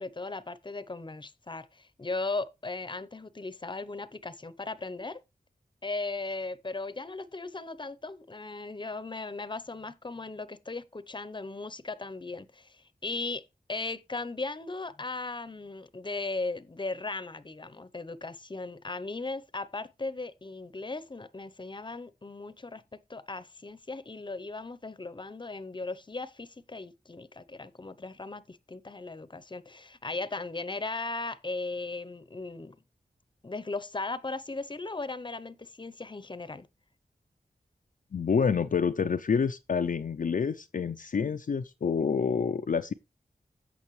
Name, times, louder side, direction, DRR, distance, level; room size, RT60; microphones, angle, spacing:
voice 1, 0.0-5.2 5.8-22.8 23.1-32.8 33.4-36.7, left 3 dB, 30° left, 0.8 m, -37 dB
voice 2, 38.1-42.9, left 6 dB, 60° left, 0.5 m, -28 dB
15.5 x 5.3 x 3.2 m
wide cardioid pair, 55°, 16 cm